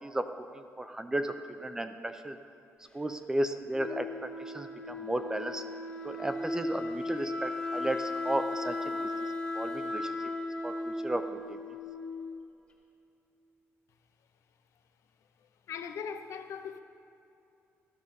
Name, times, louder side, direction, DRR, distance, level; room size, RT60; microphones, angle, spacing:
voice 1, 0.0-2.4 2.9-5.6 6.0-10.3 10.6-11.8, right 1 dB, 10° right, 0.4 m, -35 dB
Wind instrument woodwind instrument, 3.7-12.5, left 2 dB, 20° left, 1.5 m, -36 dB
voice 2, 15.7-16.8, left 6 dB, 65° left, 0.6 m, -39 dB
12.5 x 5.4 x 6.4 m
cardioid pair, 145°, 5 cm